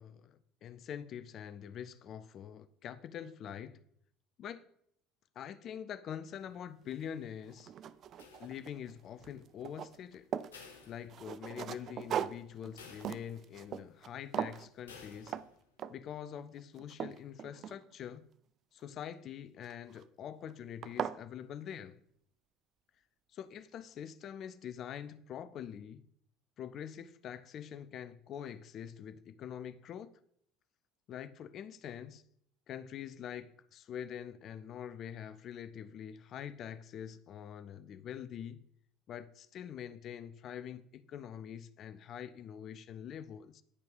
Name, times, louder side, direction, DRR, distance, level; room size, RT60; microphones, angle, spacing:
voice 1, 0.0-3.8 4.4-4.6 5.4-7.7 8.4-10.3 10.9-15.4 15.9-18.3 18.7-22.0 23.3-26.0 26.6-30.2 31.1-32.2 32.7-38.6 39.1-43.6, left 9 dB, 45° left, 0.6 m, -45 dB
sound 1, 6.9-7.0 7.5-8.9 9.2-10.6 11.1-14.1 14.3-14.7 15.3-15.5 15.8-16.2 16.6-18.2 19.6-20.0 20.5-20.6 20.8-21.2, right 9 dB, 45° right, 0.4 m, -39 dB
sound 2, 8.2-9.0 10.5-11.7 12.0-12.1 12.8-13.7 14.9-15.7, left 5 dB, 75° left, 1.2 m, -55 dB
9.6 x 5.3 x 5.3 m
figure-of-eight pair, 65°, 0 cm